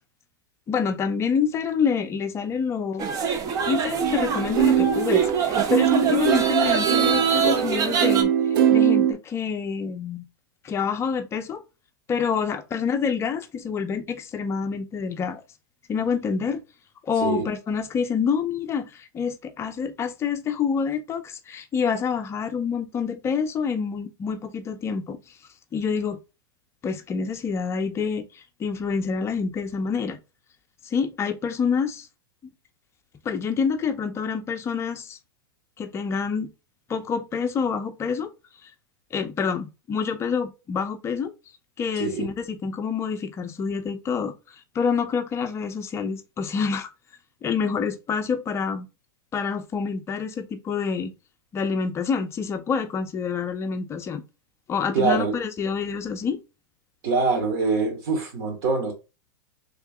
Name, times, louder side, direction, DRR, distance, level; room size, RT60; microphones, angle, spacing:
voice 1, 0.7-3.1 3.7-8.3 8.7-10.2 10.6-11.6 12.1-15.4 15.9-16.6 17.0-25.2 25.7-26.2 26.8-30.2 30.8-32.1 32.4-32.5 33.2-35.2 35.8-36.5 36.9-38.3 38.6-38.7 39.1-41.3 41.8-46.9 47.4-48.9 49.3-51.1 51.5-54.2 54.7-56.4, left 6 dB, 20° left, 0.6 m, -27 dB
sound 1, 3.0-8.2, right 7 dB, 30° right, 0.7 m, -25 dB
sound 2, 4.0-9.1, right 10 dB, 65° right, 0.7 m, -22 dB
voice 2, 42.0-42.3 54.9-55.4 57.0-58.9, right 4 dB, 50° right, 1.8 m, -24 dB
3.6 x 2.8 x 3.5 m
hypercardioid pair, 130°, 12 cm